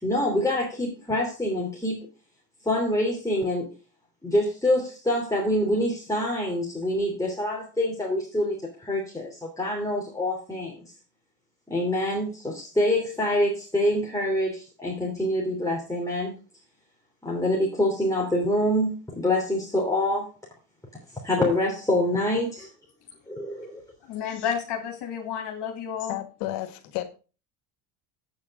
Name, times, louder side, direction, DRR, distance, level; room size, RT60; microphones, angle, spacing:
voice 1, 0.0-2.1 2.6-3.7 4.2-10.9 11.7-16.3 17.2-20.3 21.1-22.7 23.3-23.8, left 1 dB, 5° left, 3.1 m, -26 dB
voice 2, 24.0-26.2, left 8 dB, 60° left, 2.7 m, -31 dB
voice 3, 26.1-27.1, left 14 dB, 80° left, 1.8 m, -32 dB
8.7 x 7.6 x 4.9 m
supercardioid pair, 85°, 48 cm